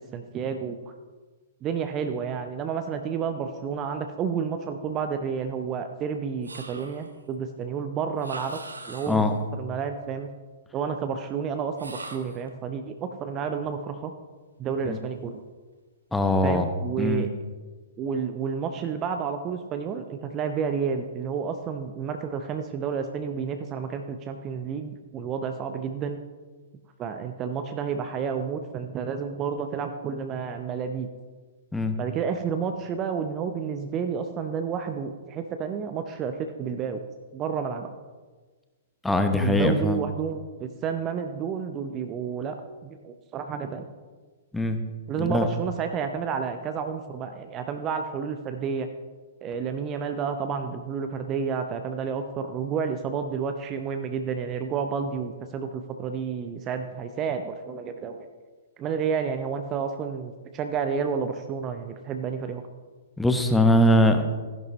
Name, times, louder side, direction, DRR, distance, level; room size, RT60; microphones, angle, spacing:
voice 1, 0.1-0.8 1.6-8.6 8.9-9.2 9.5-10.3 10.7-14.1 14.6-15.4 16.4-17.3 18.0-26.2 27.0-31.1 32.0-37.0 37.3-37.9 39.3-43.9 45.1-48.9 49.4-58.3 58.8-62.6, right 6 dB, 25° right, 7 dB, 0.6 m, -30 dB
sound 1, 6.4-7.2 8.2-9.4 11.7-12.5, right 2 dB, 75° right, 1.2 m, -41 dB
voice 2, 16.1-16.7 17.0-17.3 31.7-32.0 39.0-40.0 44.5-44.8 45.2-45.5 63.2-64.2, left 1 dB, 5° left, 6 dB, 1.0 m, -21 dB
14.5 x 11.0 x 3.1 m, 1.4 s
figure-of-eight pair, 115°, 0 cm